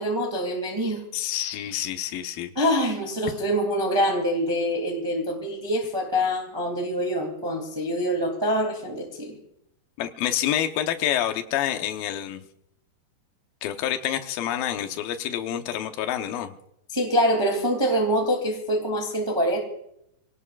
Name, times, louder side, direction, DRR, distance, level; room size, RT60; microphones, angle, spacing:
voice 1, 0.0-1.0 2.6-9.4 16.9-19.6, equal, 10° right, 2 dB, 1.8 m, -25 dB
voice 2, 1.1-2.5 10.0-12.4 13.6-16.5, left 11 dB, 70° left, 6 dB, 2.6 m, -28 dB
25.0 x 18.0 x 2.4 m, 0.76 s
omnidirectional pair, 4.6 m